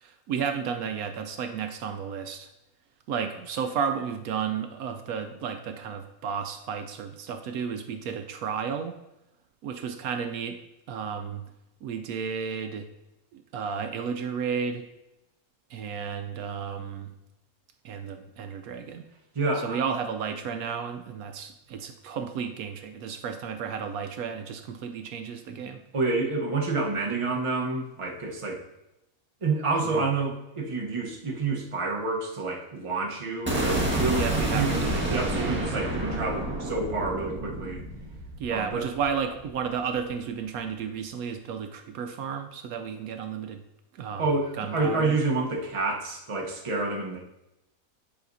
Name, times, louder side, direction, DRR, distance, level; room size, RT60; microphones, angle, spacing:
voice 1, 0.0-2.5 3.1-9.0 9.6-10.6 10.9-11.4 11.8-12.9 13.3-14.9 15.7-17.1 17.8-19.0 19.6-25.8 29.9-30.1 34.1-35.6 38.4-43.6 43.9-44.2 44.6-45.1, right 6 dB, 75° right, 6 dB, 1.0 m, -32 dB
voice 2, 19.3-19.8 25.9-28.6 29.4-37.8 38.5-38.9 44.2-47.2, right 3 dB, 25° right, -1 dB, 0.8 m, -28 dB
sound 1, 33.5-39.5, right 1 dB, 10° right, 1.2 m, -29 dB
9.8 x 4.9 x 2.6 m, 0.91 s
omnidirectional pair, 1.6 m